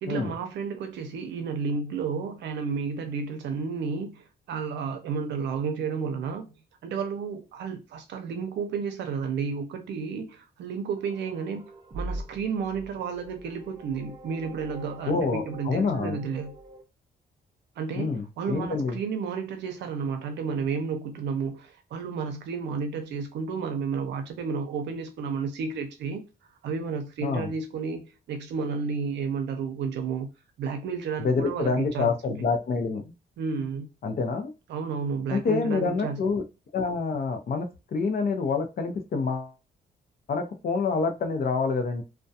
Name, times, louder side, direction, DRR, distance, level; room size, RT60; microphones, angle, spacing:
voice 1, 0.0-6.5 6.8-16.6 17.8-26.2 26.6-30.3 30.6-32.4 33.4-33.9 34.7-36.2, right 5 dB, 85° right, 0.5 m, -32 dB
sound 1, 11.0-16.8, right 1 dB, 30° right, 0.6 m, -42 dB
voice 2, 15.1-16.2 18.0-19.0 27.2-27.5 31.2-33.0 34.0-34.5 35.3-36.4 36.7-39.5 40.3-42.0, left 4 dB, 55° left, 0.6 m, -27 dB
2.3 x 2.2 x 2.7 m
cardioid pair, 80°, 18 cm